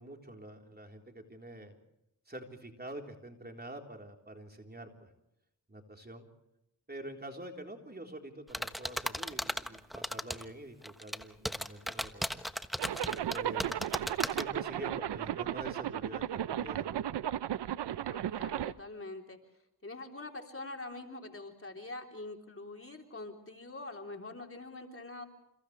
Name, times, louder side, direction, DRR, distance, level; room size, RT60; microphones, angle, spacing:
voice 1, 0.0-1.8 2.3-5.1 5.7-6.3 6.9-12.4 13.0-13.8 14.3-17.1, right 1 dB, 25° right, 2 dB, 3.9 m, -46 dB
sound 1, 8.5-10.5 10.8-14.4, equal, ahead, 1.2 m, -35 dB
Zipper (clothing), 12.8-18.7, right 11 dB, 85° right, 0.7 m, -35 dB
voice 2, 18.1-19.4 19.8-25.2, left 2 dB, 35° left, 3 dB, 3.4 m, -44 dB
29.5 x 29.0 x 3.3 m, 0.83 s
cardioid pair, 70°, 40 cm